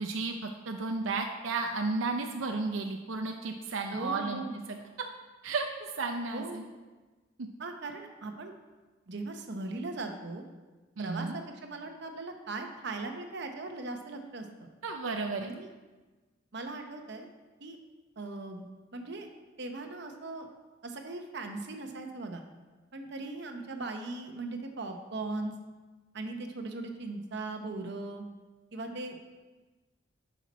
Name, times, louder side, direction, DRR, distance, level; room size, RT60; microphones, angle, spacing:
voice 1, 0.0-4.4 4.7-4.8 5.4-5.7 6.0-6.6 11.0-11.3 14.8-15.5, right 3 dB, 90° right, 4 dB, 0.6 m, -33 dB
voice 2, 3.9-4.5 6.3-6.6 7.6-8.5 9.1-10.4 11.0-14.7 15.4-15.7 16.5-17.3 17.6-17.8 18.2-18.7 18.9-19.3 19.6-20.5 20.8-22.4 22.9-25.6 26.1-28.3 28.7-29.2, right 2 dB, 60° right, 5 dB, 0.9 m, -39 dB
10.5 x 5.8 x 4.1 m, 1.2 s
head